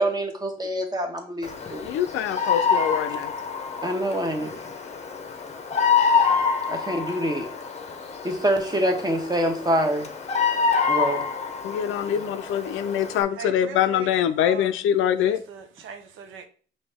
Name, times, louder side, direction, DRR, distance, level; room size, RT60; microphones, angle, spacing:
voice 1, 0.0-1.9 3.8-4.6 6.7-7.5 8.2-10.1 10.9-11.3, right 1 dB, 20° right, 1.1 m, -25 dB
Bird vocalization bird call bird song, 1.4-13.2, left 5 dB, 35° left, 0.7 m, -26 dB
voice 2, 1.8-3.3 11.6-15.4, left 10 dB, 85° left, 0.5 m, -24 dB
voice 3, 13.3-14.8 15.2-16.5, right 6 dB, 85° right, 0.7 m, -40 dB
5.2 x 2.7 x 3.5 m
cardioid pair, 90°, 20 cm